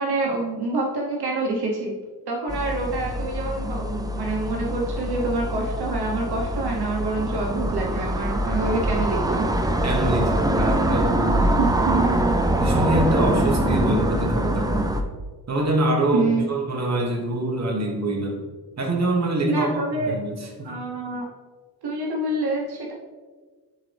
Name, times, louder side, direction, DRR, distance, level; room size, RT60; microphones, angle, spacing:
voice 1, 0.0-1.9 2.3-9.5 11.6-12.2 16.1-16.5 19.5-20.2 20.6-21.3 21.8-22.9, right 3 dB, 70° right, -1 dB, 1.1 m, -26 dB
sound 1, 2.5-15.0, right 1 dB, 10° right, 0.4 m, -24 dB
voice 2, 9.8-11.4 12.6-15.0 15.5-18.4 18.8-20.7, right 1 dB, 40° right, 0 dB, 1.4 m, -25 dB
11.5 x 3.9 x 3.4 m, 1.4 s
wide cardioid pair, 125°, 40 cm